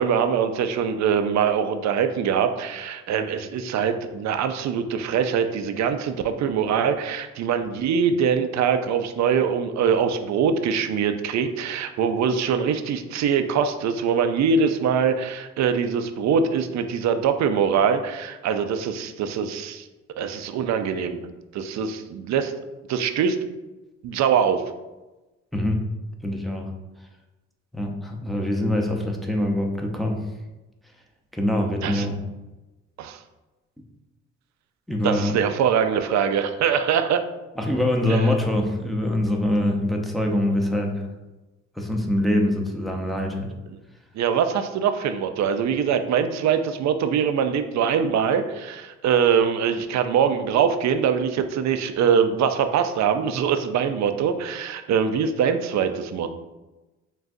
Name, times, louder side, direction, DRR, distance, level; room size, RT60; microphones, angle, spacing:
voice 1, 0.0-19.9 20.2-21.2 21.5-22.5 22.9-23.4 24.0-24.6 31.8-32.1 33.0-33.2 35.0-37.2 38.1-38.2 44.1-56.3, right 7 dB, 65° right, 9 dB, 0.5 m, -23 dB
voice 2, 25.5-25.8 26.2-26.7 27.7-30.2 31.3-32.2 34.9-35.4 37.6-41.0 41.8-43.5, left 1 dB, ahead, 1 dB, 0.6 m, -24 dB
6.1 x 2.3 x 2.6 m, 1.1 s
cardioid pair, 90°, 30 cm